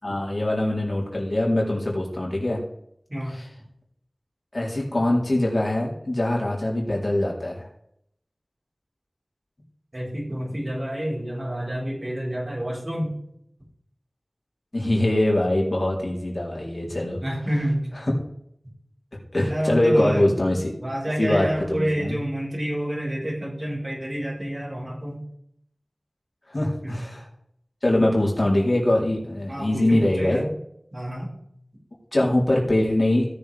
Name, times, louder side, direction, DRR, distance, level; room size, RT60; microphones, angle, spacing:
voice 1, 0.0-2.6 3.3-3.4 4.5-7.7 14.7-17.2 19.3-20.7 21.2-22.2 26.5-27.2 27.8-30.4 32.1-33.3, left 1 dB, 50° left, -3 dB, 4.0 m, -23 dB
voice 2, 3.1-3.4 9.9-13.1 17.2-17.9 19.5-20.3 20.8-25.2 26.8-27.0 29.5-30.5 30.9-31.3, equal, 45° right, -4 dB, 5.1 m, -28 dB
17.5 x 6.9 x 3.6 m, 0.73 s
wide cardioid pair, 40°, 0 cm